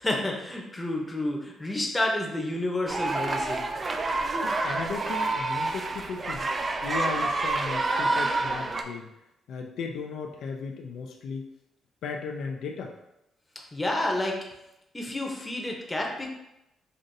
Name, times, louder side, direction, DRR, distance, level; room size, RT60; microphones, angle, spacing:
voice 1, 0.0-3.7 13.7-14.4 14.9-16.4, left 1 dB, 15° left, 0 dB, 0.8 m, -30 dB
sound 1, 2.9-8.8, right 3 dB, 30° right, 0.4 m, -28 dB
voice 2, 4.4-6.5 6.8-9.1 9.5-11.4 12.0-12.9, left 5 dB, 75° left, 2 dB, 0.4 m, -36 dB
5.2 x 2.5 x 2.7 m, 0.88 s
cardioid pair, 90°, 0 cm